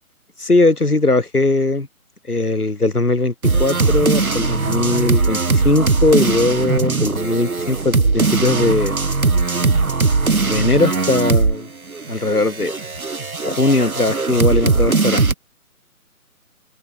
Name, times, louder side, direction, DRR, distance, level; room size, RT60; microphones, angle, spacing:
voice 1, 0.4-1.9 2.3-3.3 3.6-9.0 10.5-11.7 12.1-12.7 13.4-15.3, left 2 dB, 80° left, 4.3 m, -19 dB
sound 1, 3.4-11.6 11.9-15.3, right 3 dB, 70° right, 3.1 m, -19 dB
open air
figure-of-eight pair, 150°, 44 cm